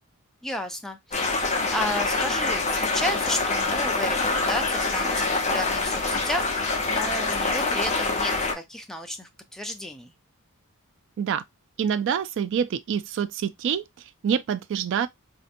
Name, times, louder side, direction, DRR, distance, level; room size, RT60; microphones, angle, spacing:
voice 1, 0.4-1.4 1.7-10.1, left 1 dB, ahead, 0.5 m, -33 dB
sound 1, 1.1-8.5, left 3 dB, 30° left, 0.8 m, -25 dB
voice 2, 11.8-15.1, right 7 dB, 55° right, 0.3 m, -26 dB
4.2 x 2.7 x 2.5 m
head